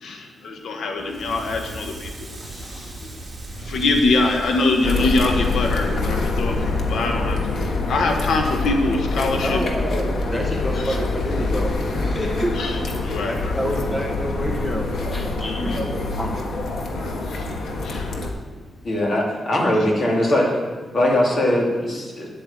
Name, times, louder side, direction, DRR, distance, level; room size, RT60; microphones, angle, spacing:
voice 1, 0.0-3.1 3.6-7.5 7.9-9.6 12.6-12.8 13.0-13.5 15.4-15.8 17.3-17.5 17.8-18.1, left 2 dB, 85° left, 3 dB, 1.3 m, -24 dB
Crackle, 1.0-9.9, right 2 dB, 20° right, 3.3 m, -38 dB
sound 1, 4.8-18.3, left 3 dB, 65° left, 1.5 m, -25 dB
voice 2, 9.3-12.5 13.3-16.3 17.3-17.5, equal, 15° left, 1 dB, 1.4 m, -28 dB
voice 3, 18.8-20.6 20.9-22.3, left 1 dB, 40° left, -1 dB, 2.7 m, -20 dB
9.9 x 8.7 x 7.2 m, 1.3 s
wide cardioid pair, 160°, 0 cm